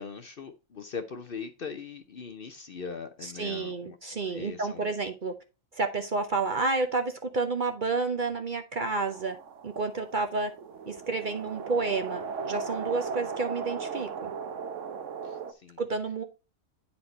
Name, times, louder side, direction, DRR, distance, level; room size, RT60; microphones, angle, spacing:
voice 1, 0.0-4.0 4.2-4.9 15.2-15.8, left 5 dB, 50° left, 0.8 m, -40 dB
voice 2, 3.2-5.3 5.7-9.4 9.6-10.5 10.9-14.3 15.8-16.2, right 3 dB, 45° right, 0.8 m, -30 dB
sound 1, 8.9-15.5, right 5 dB, 65° right, 1.1 m, -37 dB
9.5 x 4.4 x 4.0 m
omnidirectional pair, 1.4 m